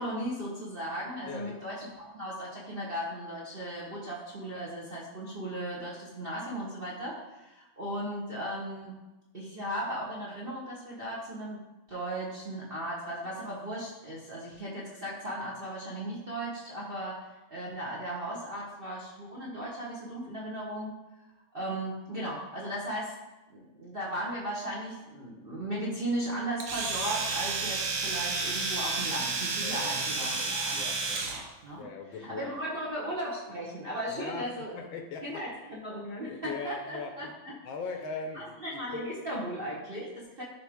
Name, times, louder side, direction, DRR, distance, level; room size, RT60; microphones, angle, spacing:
voice 1, 0.0-8.9 9.3-11.6 11.9-17.1 17.5-20.9 21.5-23.1 23.5-31.9 32.2-34.8 35.2-37.5 38.3-40.4, right 1 dB, 35° right, -4 dB, 0.9 m, -36 dB
voice 2, 1.3-1.6 29.6-31.3 31.8-32.5 34.1-34.5 34.7-35.4 36.0-37.4 37.6-39.0, left 5 dB, 70° left, 4 dB, 1.5 m, -40 dB
Domestic sounds home sounds, 26.6-31.4, right 4 dB, 65° right, 0.8 m, -31 dB
11.5 x 3.8 x 3.6 m, 1.0 s
omnidirectional pair, 2.3 m